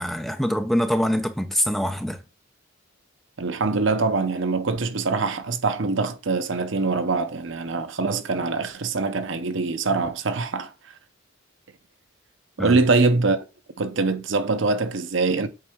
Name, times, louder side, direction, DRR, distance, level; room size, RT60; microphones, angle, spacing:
voice 1, 0.0-2.2 12.6-12.8, equal, ahead, 0.7 m, -24 dB
voice 2, 3.4-10.7 12.6-13.4 13.8-15.5, right 3 dB, 65° right, 0.7 m, -23 dB
7.8 x 4.4 x 3.6 m
head